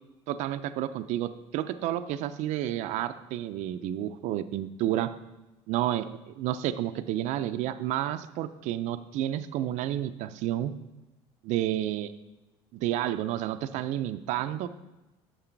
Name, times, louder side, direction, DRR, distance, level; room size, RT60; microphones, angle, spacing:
voice 1, 0.3-5.1 5.7-10.7 11.4-12.1 12.7-14.7, right 12 dB, 65° right, 10 dB, 0.5 m, -30 dB
8.8 x 6.6 x 4.6 m, 1.0 s
supercardioid pair, 105°, 13 cm